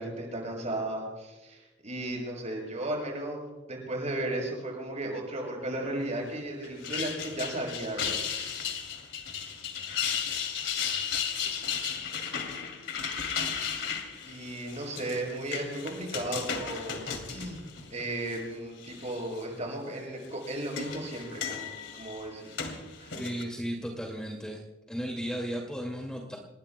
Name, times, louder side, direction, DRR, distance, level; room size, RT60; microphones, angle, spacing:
voice 1, 0.0-8.2 14.2-22.6 23.0-23.2, right 1 dB, 40° right, 0 dB, 6.7 m, -35 dB
sound 1, 6.6-18.4 18.8-19.4 20.2-23.4, left 7 dB, 80° left, 2.7 m, -35 dB
voice 2, 23.2-24.6 24.9-26.4, equal, 5° left, -1 dB, 2.2 m, -35 dB
28.5 x 20.5 x 2.2 m, 1.2 s
head